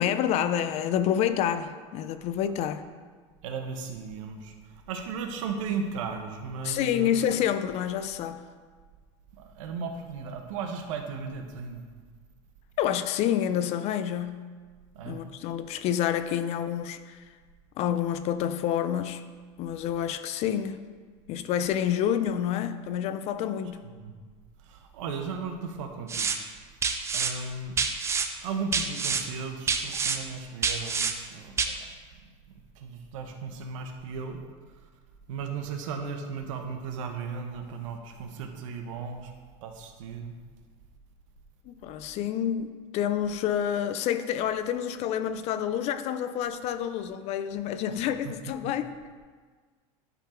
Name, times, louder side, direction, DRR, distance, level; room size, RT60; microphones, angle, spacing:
voice 1, 0.0-2.9 6.6-8.4 12.8-14.5 15.1-17.2 17.8-19.2 19.6-20.8 21.3-23.8 41.7-42.7 42.9-48.9, left 10 dB, 40° left, 11 dB, 0.4 m, -28 dB
voice 2, 3.4-4.5 4.9-7.2 9.4-11.8 14.9-15.2 24.0-24.1 24.7-26.3 27.1-27.8 28.4-31.5 32.8-34.4 35.3-39.3 39.6-40.3, right 5 dB, 85° right, 4 dB, 1.0 m, -36 dB
sound 1, 26.1-26.4 26.8-27.3 27.8-28.3 28.7-29.2 29.7-30.2 30.6-31.1 31.6-31.7, right 5 dB, 15° right, 0.5 m, -27 dB
10.5 x 3.9 x 4.4 m, 1.5 s
supercardioid pair, 140°, 16 cm